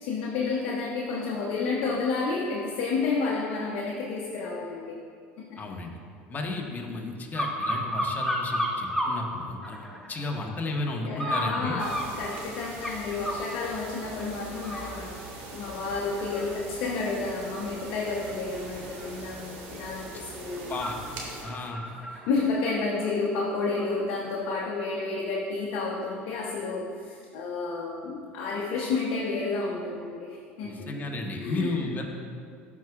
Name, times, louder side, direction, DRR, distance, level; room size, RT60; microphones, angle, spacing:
voice 1, 0.0-4.9 5.4-5.6 11.1-20.7 22.3-31.0 31.4-31.9, left 4 dB, 65° left, -4 dB, 0.9 m, -31 dB
voice 2, 5.6-5.9 6.3-11.8 20.7-21.0 21.4-21.8 30.6-32.0, left 2 dB, 30° left, 1 dB, 1.2 m, -33 dB
sound 1, 7.3-9.2 9.6-10.3 11.2-13.5 14.0-14.2 14.5-23.9 24.3-24.4, equal, 5° left, 1.1 m, -34 dB
sound 2, 11.8-21.4, right 3 dB, 70° right, 1.5 m, -42 dB
12.0 x 4.8 x 2.4 m, 2.2 s
hypercardioid pair, 80°, 6 cm